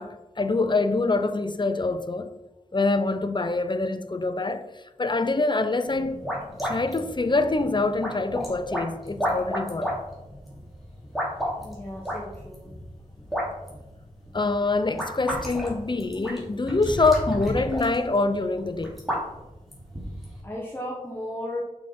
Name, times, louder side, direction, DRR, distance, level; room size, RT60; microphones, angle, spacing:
voice 1, 0.0-2.3 2.7-6.2 6.6-10.0 14.3-19.0, left 3 dB, 35° left, 0.7 m, -25 dB
sound 1, 5.8-20.4, equal, ahead, 3.0 m, -33 dB
voice 2, 11.6-12.8 13.2-13.3 13.7-13.8 14.3-14.4 20.4-21.6, left 1 dB, 15° left, 1.4 m, -36 dB
6.4 x 5.9 x 4.7 m
wide cardioid pair, 55°, 14 cm